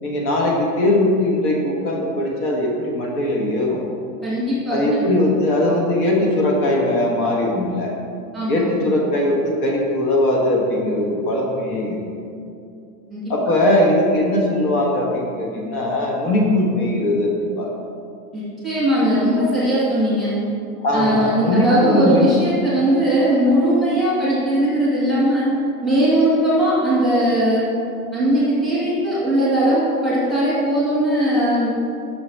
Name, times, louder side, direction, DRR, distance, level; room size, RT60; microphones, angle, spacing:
voice 1, 0.0-3.8 4.7-7.9 8.5-12.0 13.3-17.7 20.8-22.2, left 1 dB, 65° left, -1 dB, 1.4 m, -20 dB
voice 2, 4.2-5.0 8.3-8.7 13.1-13.2 18.3-20.3 20.9-25.5 25.8-27.6 28.1-31.9, right 1 dB, ahead, -10 dB, 1.4 m, -19 dB
6.0 x 4.6 x 4.5 m, 2.6 s
supercardioid pair, 160°, 48 cm